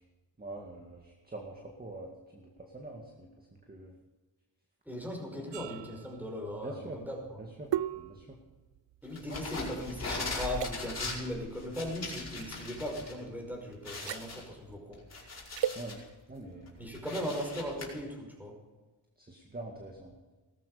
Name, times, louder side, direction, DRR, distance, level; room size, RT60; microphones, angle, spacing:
voice 1, 0.4-3.9 6.6-7.0 7.6-7.7 8.0-8.4 9.3-9.5 15.8-16.8 19.2-20.2, right 2 dB, 20° right, 1 dB, 2.0 m, -45 dB
voice 2, 4.9-7.4 9.0-15.0 16.8-18.5, equal, 5° right, 0 dB, 5.6 m, -38 dB
sound 1, 5.5-10.0 10.5-10.7 12.4-12.6 13.9-14.3 15.5-15.8, right 11 dB, 75° right, 0.6 m, -37 dB
sound 2, 9.2-13.1 13.5-13.6 13.8-16.0 16.5-17.9, left 3 dB, 35° left, 5.1 m, -40 dB
18.5 x 14.0 x 5.1 m, 1.2 s
wide cardioid pair, 130°, 44 cm